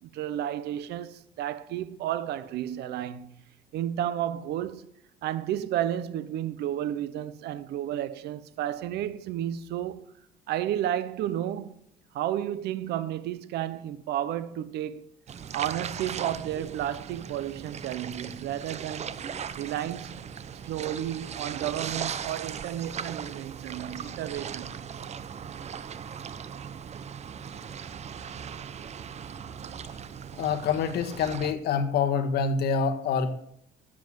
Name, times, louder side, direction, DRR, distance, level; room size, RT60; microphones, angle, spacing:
voice 1, 0.0-3.4 3.7-4.9 5.2-10.1 10.5-11.8 12.1-15.1 15.5-19.2 19.6-20.2 20.6-24.7, right 11 dB, 75° right, 0.8 m, -32 dB
sound 1, 15.3-31.5, right 7 dB, 40° right, 0.9 m, -38 dB
voice 2, 30.4-33.3, left 6 dB, 70° left, 1.6 m, -26 dB
13.0 x 7.7 x 7.5 m
cardioid pair, 110°, 17 cm